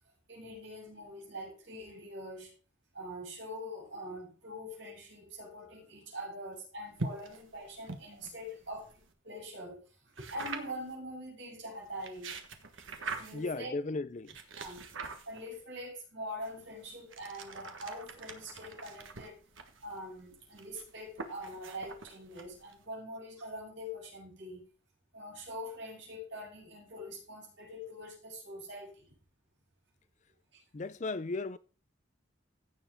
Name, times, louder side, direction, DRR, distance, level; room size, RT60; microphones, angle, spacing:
voice 1, 0.3-2.5 2.9-9.0 9.2-12.4 13.2-13.7 14.6-14.8 15.3-19.5 19.8-24.6 25.1-29.2 30.5-30.6, equal, 70° right, 6.9 m, -44 dB
sound 1, 6.9-9.1 10.2-10.9 11.8-13.5 14.3-15.6 16.4-22.8, right 4 dB, 90° right, 1.5 m, -44 dB
voice 2, 13.3-14.4 30.7-31.6, left 3 dB, 35° left, 0.4 m, -36 dB
16.0 x 7.1 x 3.7 m
head